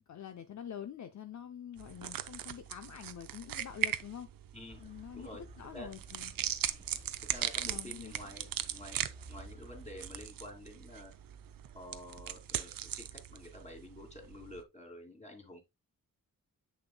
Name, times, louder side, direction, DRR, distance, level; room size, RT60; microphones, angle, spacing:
voice 1, 0.1-4.3 4.8-5.3 5.6-6.3 7.6-8.1, left 9 dB, 55° left, 0.7 m, -46 dB
sound 1, 1.8-14.6, right 10 dB, 80° right, 0.6 m, -40 dB
sound 2, 4.7-10.3, right 2 dB, 20° right, 1.3 m, -54 dB
voice 2, 7.2-9.0 9.3-11.1 11.7-15.6, left 1 dB, 20° left, 2.6 m, -49 dB
7.3 x 6.5 x 2.2 m
cardioid pair, 85°, 34 cm